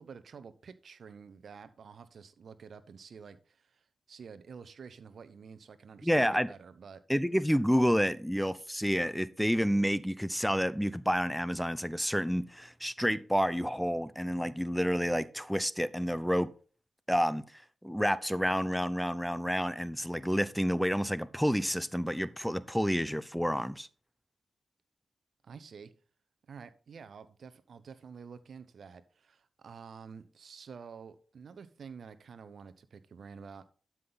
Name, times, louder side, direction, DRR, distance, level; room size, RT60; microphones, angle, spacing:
voice 1, 0.0-7.0 25.4-25.9 26.5-33.7, right 6 dB, 65° right, 0.9 m, -49 dB
voice 2, 6.0-6.5 7.1-16.5 17.1-23.9, equal, ahead, 0.7 m, -29 dB
12.5 x 5.8 x 4.0 m
supercardioid pair, 40°, 0 cm